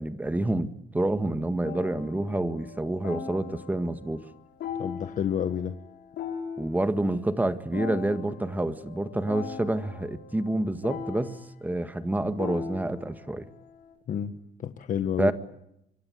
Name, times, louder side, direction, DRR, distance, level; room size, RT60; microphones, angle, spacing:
voice 1, 0.0-4.2 6.6-13.5 15.2-15.3, right 1 dB, 10° right, 10 dB, 1.7 m, -28 dB
sound 1, 1.6-13.9, left 7 dB, 70° left, 6.6 m, -40 dB
voice 2, 4.8-5.8 14.1-14.3 14.6-15.3, left 8 dB, 50° left, 8 dB, 1.5 m, -29 dB
25.0 x 24.5 x 9.4 m, 0.81 s
cardioid pair, 110°, 17 cm